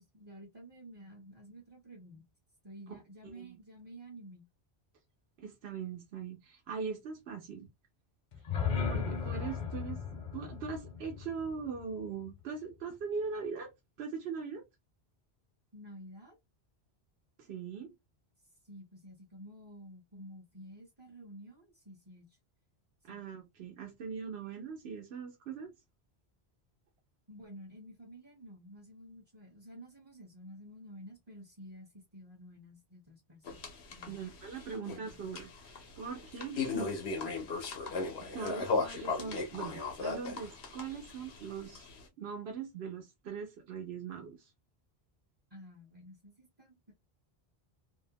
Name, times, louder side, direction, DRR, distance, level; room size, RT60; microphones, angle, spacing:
voice 1, 0.0-2.2 2.6-4.4 15.7-16.4 18.6-22.4 23.1-23.2 27.3-34.2 34.6-35.2 37.2-38.0 45.5-46.9, equal, 30° right, 0.6 m, -51 dB
voice 2, 3.2-3.6 5.4-7.7 8.8-10.0 10.3-13.7 14.0-14.6 17.4-17.9 23.0-25.7 34.1-37.2 38.2-41.9 42.2-44.5, right 5 dB, 75° right, 0.9 m, -41 dB
sound 1, 8.3-12.4, left 6 dB, 50° left, 0.7 m, -36 dB
sound 2, 33.5-42.0, left 4 dB, 85° left, 1.0 m, -37 dB
2.7 x 2.0 x 2.7 m
omnidirectional pair, 1.1 m